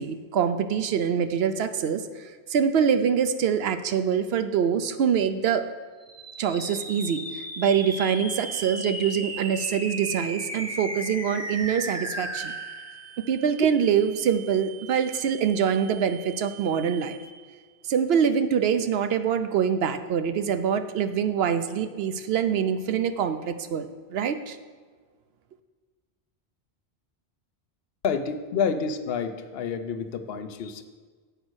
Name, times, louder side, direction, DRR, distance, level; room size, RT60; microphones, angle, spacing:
voice 1, 0.0-5.6 6.4-12.5 13.3-17.2 17.9-24.6, right 7 dB, 70° right, 10 dB, 0.8 m, -25 dB
sound 1, 6.0-17.6, right 1 dB, 20° right, 0.6 m, -37 dB
voice 2, 28.0-30.8, left 6 dB, 70° left, 10 dB, 0.9 m, -29 dB
8.0 x 5.2 x 6.2 m, 1.5 s
omnidirectional pair, 1.1 m